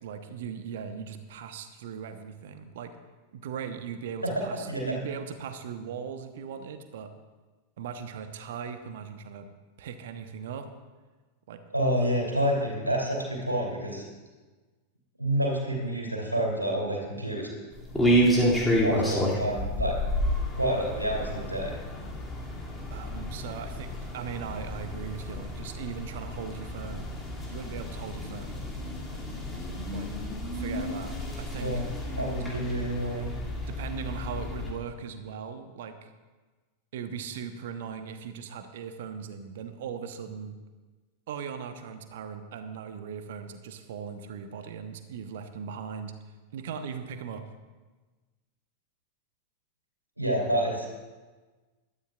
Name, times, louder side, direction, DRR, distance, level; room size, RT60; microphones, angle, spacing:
voice 1, 0.0-2.9 3.3-7.1 7.8-9.5 9.8-10.7 11.5-11.6 22.9-27.1 27.5-28.6 29.9-30.1 30.5-31.8 32.4-32.5 33.7-36.1 36.9-40.5 41.3-46.1 46.5-47.4, right 7 dB, 55° right, 9 dB, 1.0 m, -39 dB
voice 2, 4.7-5.0 11.7-14.0 15.2-17.5 18.8-20.0 20.6-21.7 31.6-31.8 32.2-33.3 50.2-50.9, right 1 dB, 85° right, -2 dB, 3.1 m, -28 dB
sound 1, 17.7-34.7, equal, 5° left, 2.5 m, -30 dB
21.0 x 12.5 x 2.4 m, 1.3 s
figure-of-eight pair, 90°, 0 cm